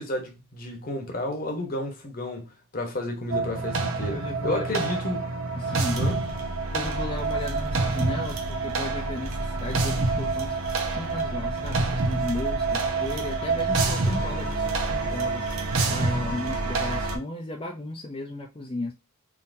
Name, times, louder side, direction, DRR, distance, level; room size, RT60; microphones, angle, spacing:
voice 1, 0.0-5.2 6.0-6.2, left 1 dB, 40° left, 1.0 m, -32 dB
sound 1, 3.3-17.2, right 3 dB, 70° right, 0.7 m, -27 dB
voice 2, 4.1-4.8 5.6-6.1 6.7-15.5 15.9-18.9, left 2 dB, 25° left, 0.4 m, -35 dB
3.7 x 2.7 x 2.6 m
head